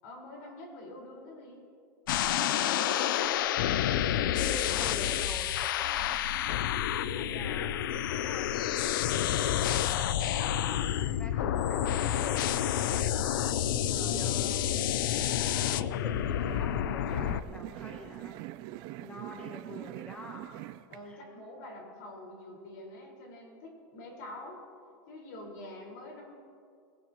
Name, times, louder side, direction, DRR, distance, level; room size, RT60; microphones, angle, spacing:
voice 1, 0.0-1.7 2.1-3.4 7.0-7.6 13.8-14.7 19.0-19.4 20.9-24.6 25.1-26.3, left 2 dB, 60° left, 0 dB, 4.9 m, -45 dB
sound 1, 2.1-17.4, left 11 dB, 80° left, 0.6 m, -29 dB
voice 2, 2.5-3.1 4.3-6.3 7.3-13.1 13.9-14.5 14.8-18.4 19.0-20.5 21.0-21.2, left 1 dB, 10° left, 2 dB, 1.1 m, -46 dB
sound 2, 15.8-21.0, right 15 dB, 40° right, 0.4 m, -44 dB
20.5 x 18.5 x 3.1 m, 2.4 s
supercardioid pair, 160°, 11 cm